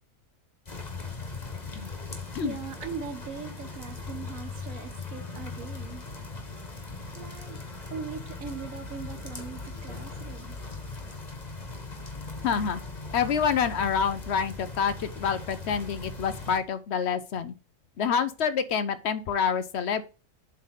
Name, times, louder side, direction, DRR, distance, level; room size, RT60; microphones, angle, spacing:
sound 1, 0.7-16.6, left 3 dB, 30° left, 1.6 m, -39 dB
voice 1, 2.4-6.1 7.1-7.6 7.9-10.6, right 6 dB, 90° right, 1.6 m, -40 dB
voice 2, 12.4-12.8 13.1-17.5 18.0-20.0, left 7 dB, 60° left, 0.9 m, -27 dB
7.7 x 3.5 x 6.5 m
omnidirectional pair, 1.3 m